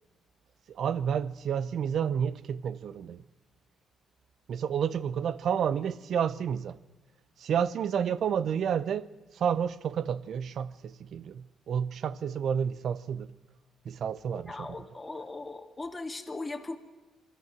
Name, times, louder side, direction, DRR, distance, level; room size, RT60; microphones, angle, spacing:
voice 1, 0.7-3.2 4.5-6.8 7.4-13.3 13.8-14.9, right 8 dB, 65° right, 0.7 m, -30 dB
voice 2, 14.3-16.8, left 3 dB, 20° left, 2.1 m, -39 dB
25.5 x 13.5 x 7.6 m
cardioid pair, 90°, 0 cm